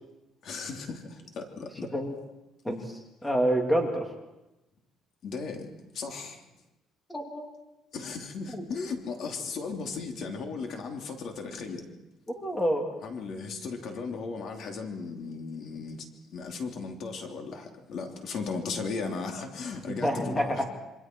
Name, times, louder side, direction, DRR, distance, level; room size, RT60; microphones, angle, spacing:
voice 1, 0.4-1.9 5.2-6.5 7.9-11.9 13.0-20.6, left 4 dB, 55° left, 3 dB, 3.2 m, -36 dB
voice 2, 2.6-4.1 7.1-7.5 8.5-8.6 12.3-12.9 20.0-20.6, equal, 10° left, 2 dB, 2.9 m, -28 dB
27.5 x 25.5 x 4.7 m, 0.97 s
cardioid pair, 135°, 0 cm